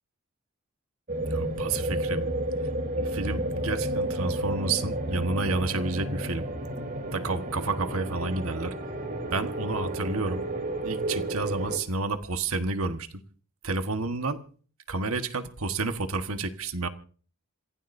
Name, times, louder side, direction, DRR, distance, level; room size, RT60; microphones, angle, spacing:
sound 1, 1.1-11.8, right 1 dB, 40° right, 3.3 m, -31 dB
voice 1, 1.2-2.3 2.6-2.7 3.0-6.4 7.1-8.7 9.3-10.4 10.8-13.2 13.6-14.4 14.9-16.9, right 3 dB, 80° right, 1.4 m, -30 dB
27.5 x 16.0 x 2.7 m
head